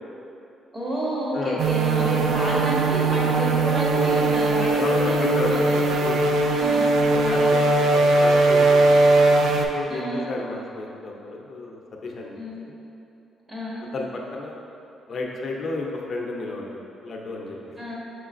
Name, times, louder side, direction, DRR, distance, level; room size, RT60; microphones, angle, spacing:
voice 1, 0.7-5.8 6.5-7.5 9.9-10.2 12.4-12.6 13.5-13.8 17.8-17.9, equal, 30° right, -6 dB, 1.1 m, -30 dB
sound 1, 1.6-9.7, right 2 dB, 75° right, 0.3 m, -20 dB
voice 2, 4.8-5.6 6.0-6.2 7.1-7.4 7.7-9.0 9.5-12.4 12.7-12.8 13.9-14.6 15.1-17.6, left 3 dB, 50° left, -1 dB, 0.6 m, -32 dB
5.6 x 3.1 x 2.5 m, 2.8 s
cardioid pair, 90°, 0 cm